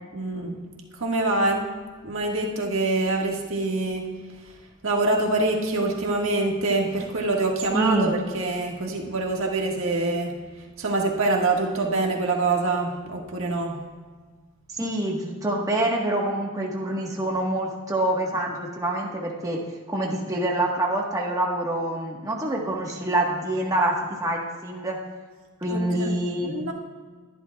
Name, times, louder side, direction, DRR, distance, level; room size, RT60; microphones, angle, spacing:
voice 1, 0.1-0.6 1.0-1.7 2.0-4.1 4.8-10.4 10.8-13.8 25.7-26.1 26.4-26.7, right 2 dB, 60° right, 0 dB, 1.7 m, -25 dB
voice 2, 7.7-8.1 14.7-19.6 19.9-23.9 24.2-25.0 25.6-26.5, right 1 dB, 15° right, -2 dB, 1.3 m, -26 dB
21.0 x 11.0 x 2.3 m, 1.5 s
head